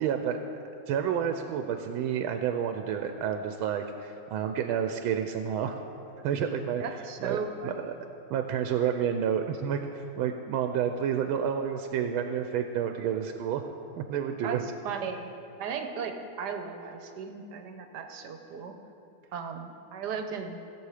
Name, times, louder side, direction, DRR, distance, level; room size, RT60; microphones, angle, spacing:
voice 1, 0.0-0.4 0.9-5.8 6.2-6.8 7.2-7.9 8.3-13.7 14.0-14.6, right 8 dB, 85° right, 7 dB, 1.4 m, -30 dB
voice 2, 6.8-7.8 14.4-14.6 14.8-15.3 15.6-18.7 19.3-20.6, right 6 dB, 65° right, 5 dB, 1.2 m, -36 dB
17.0 x 6.9 x 4.9 m, 2.9 s
omnidirectional pair, 2.3 m